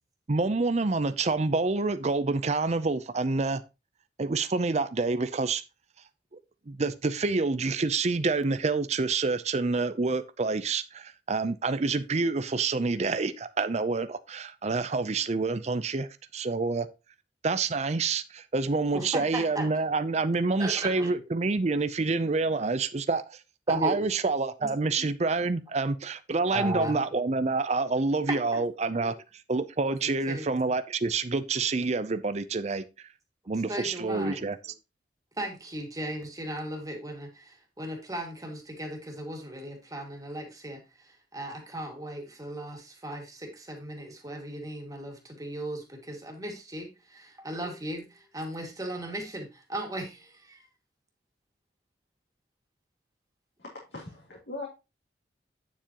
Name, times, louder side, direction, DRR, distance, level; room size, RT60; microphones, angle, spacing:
voice 1, 0.3-3.6 4.2-5.6 6.7-16.9 17.4-23.4 23.7-29.1 29.5-32.8 33.5-34.6, right 3 dB, 35° right, 0.5 m, -27 dB
voice 2, 18.9-19.7 20.6-21.1 23.7-24.1 26.5-27.0 28.3-28.6 29.0-29.2 29.9-30.5 33.7-34.5 35.4-50.7, right 1 dB, 20° right, 2.0 m, -37 dB
voice 3, 53.6-54.7, left 2 dB, 75° left, 3.1 m, -40 dB
9.1 x 7.3 x 2.9 m
head